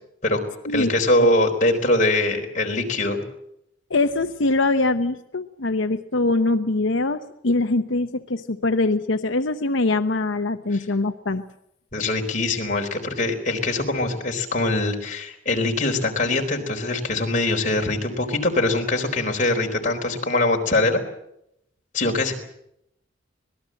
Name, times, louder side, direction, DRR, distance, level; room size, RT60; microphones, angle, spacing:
voice 1, 0.7-3.2 11.9-21.0 21.9-22.3, left 2 dB, 40° left, 2 dB, 4.2 m, -22 dB
voice 2, 3.9-11.4, left 2 dB, 85° left, 8 dB, 0.9 m, -23 dB
25.5 x 19.0 x 7.7 m, 0.77 s
head